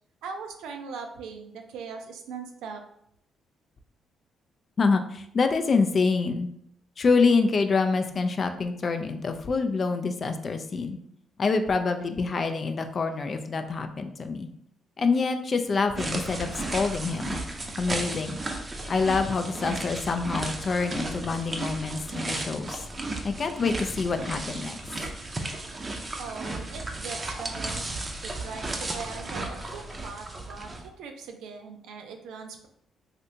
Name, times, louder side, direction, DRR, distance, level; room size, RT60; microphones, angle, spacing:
voice 1, 0.2-2.8 26.2-27.9 28.2-32.7, right 5 dB, 90° right, 4 dB, 0.4 m, -40 dB
voice 2, 4.8-6.5 7.0-11.0 11.4-14.5 15.0-17.4 17.8-18.4 18.9-22.8 23.2-24.8, left 4 dB, 45° left, 7 dB, 0.3 m, -26 dB
sound 1, 16.0-30.9, right 2 dB, 25° right, 0.5 m, -34 dB
3.3 x 2.7 x 2.7 m, 0.72 s
cardioid pair, 90°, 0 cm